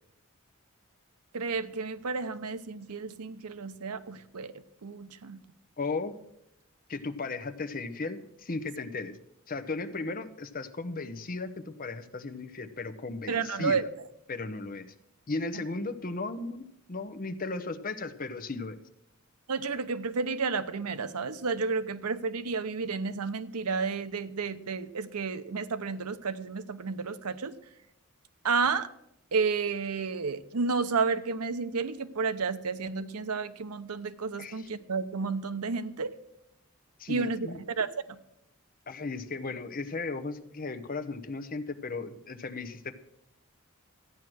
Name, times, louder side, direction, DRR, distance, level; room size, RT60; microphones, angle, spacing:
voice 1, 1.3-4.5 4.8-5.4 13.3-13.8 15.6-15.7 19.5-27.5 28.4-28.9 29.3-36.1 37.1-37.5 37.8-38.2, right 4 dB, 90° right, 13 dB, 0.8 m, -31 dB
voice 2, 5.8-6.1 6.9-9.2 9.5-13.9 14.3-14.9 15.3-18.8 34.4-34.7 37.0-37.6 38.9-42.9, left 3 dB, 40° left, 11 dB, 0.8 m, -36 dB
14.0 x 9.3 x 6.2 m, 0.81 s
head